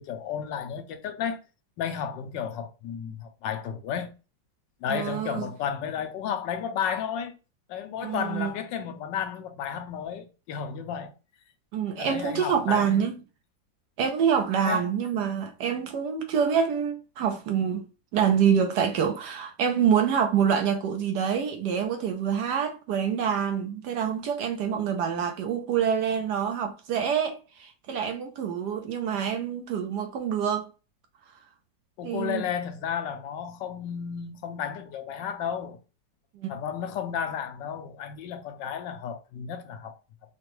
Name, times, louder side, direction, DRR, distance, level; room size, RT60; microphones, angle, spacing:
voice 1, 0.0-1.4 1.8-4.1 4.8-7.4 7.7-11.1 12.0-13.0 14.7-14.9 32.0-35.8 36.5-40.0, left 8 dB, 75° left, 1.3 m, -33 dB
voice 2, 4.9-5.5 8.0-8.5 11.7-13.2 14.0-17.8 18.1-30.7 32.0-32.4 36.4-36.6, right 7 dB, 70° right, 1.1 m, -26 dB
4.9 x 2.2 x 3.0 m
omnidirectional pair, 2.0 m